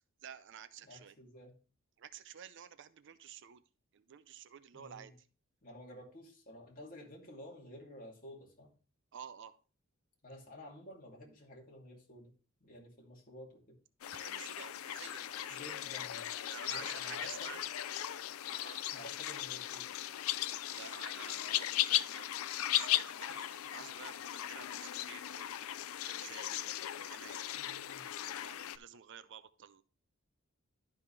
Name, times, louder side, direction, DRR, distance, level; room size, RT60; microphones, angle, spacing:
voice 1, 0.2-1.2 2.0-3.6 3.9-5.1 9.1-9.5 14.1-15.8 16.5-17.7 18.5-18.8 20.7-22.3 22.7-27.5 28.2-29.8, right 9 dB, 60° right, 0.5 m, -51 dB
voice 2, 0.8-1.5 4.7-5.1 5.6-8.7 10.2-12.3 12.6-13.8 15.5-16.3 16.6-17.6 18.9-19.9 27.5-28.0, left 1 dB, 40° left, 2.6 m, -52 dB
sound 1, 14.0-28.8, left 13 dB, 75° left, 0.4 m, -37 dB
11.5 x 5.5 x 3.2 m
head